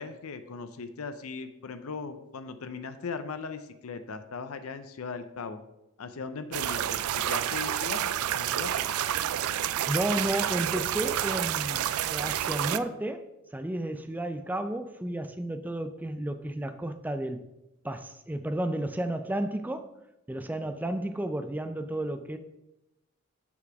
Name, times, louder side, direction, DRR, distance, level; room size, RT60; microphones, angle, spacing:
voice 1, 0.0-5.6 6.0-9.0, left 4 dB, 85° left, 0.6 m, -39 dB
sound 1, 6.5-12.8, right 11 dB, 85° right, 0.3 m, -29 dB
voice 2, 9.9-17.5 17.8-20.0 20.3-22.4, right 1 dB, 10° right, 0.3 m, -32 dB
6.1 x 5.9 x 4.7 m
head